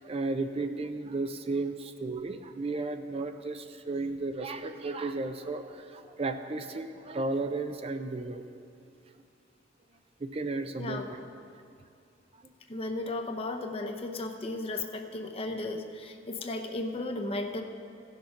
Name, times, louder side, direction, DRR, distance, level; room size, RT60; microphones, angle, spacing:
voice 1, 0.0-8.4 10.2-11.0 12.3-12.4, right 3 dB, 35° right, 8 dB, 0.5 m, -34 dB
voice 2, 10.8-11.3 12.7-17.6, left 2 dB, 30° left, 4 dB, 0.7 m, -35 dB
15.5 x 6.6 x 5.8 m, 2.5 s
head